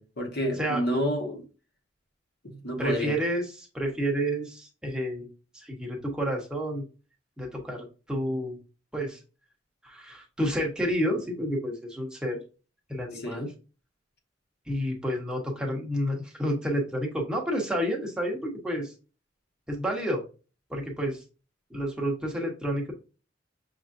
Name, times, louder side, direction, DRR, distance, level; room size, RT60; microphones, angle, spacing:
voice 1, 0.0-1.4 2.4-3.2 13.2-13.5, equal, 55° left, 1.1 m, -29 dB
voice 2, 2.8-5.3 5.5-6.8 7.4-8.6 8.9-9.2 9.8-12.4 12.9-13.5 14.7-18.9 19.7-20.2 20.7-21.2 21.7-22.9, equal, 5° right, 0.9 m, -30 dB
6.1 x 2.5 x 2.5 m
head